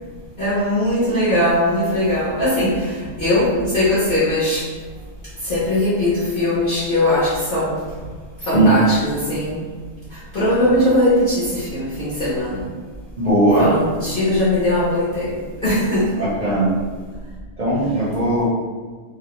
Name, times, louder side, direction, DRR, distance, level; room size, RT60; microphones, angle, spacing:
voice 1, 0.4-4.6 5.4-7.8 8.5-9.6 10.3-12.6 13.6-16.2, left 1 dB, 50° left, -10 dB, 0.7 m, -20 dB
voice 2, 13.2-13.7 16.2-16.7 17.6-18.5, right 1 dB, 45° right, -9 dB, 0.6 m, -17 dB
2.4 x 2.0 x 2.8 m, 1.5 s
omnidirectional pair, 1.4 m